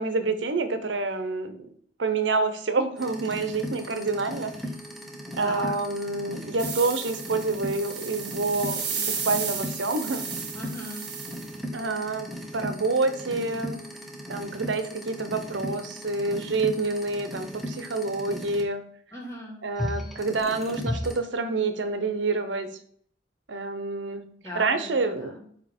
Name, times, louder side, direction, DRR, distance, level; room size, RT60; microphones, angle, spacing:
voice 1, 0.0-1.6 2.0-4.5 5.3-10.2 11.7-12.3 12.5-13.8 14.3-18.8 19.6-22.7 23.5-24.2 24.5-25.3, right 3 dB, 85° right, 9 dB, 0.8 m, -27 dB
sound 1, 3.0-18.6 19.8-21.2, equal, ahead, 0.9 m, -37 dB
sound 2, 6.6-11.5, right 6 dB, 60° right, 1.5 m, -34 dB
voice 2, 10.5-11.1 19.1-19.6 24.4-25.5, equal, 15° left, -2 dB, 1.9 m, -38 dB
8.9 x 3.0 x 4.3 m, 0.62 s
head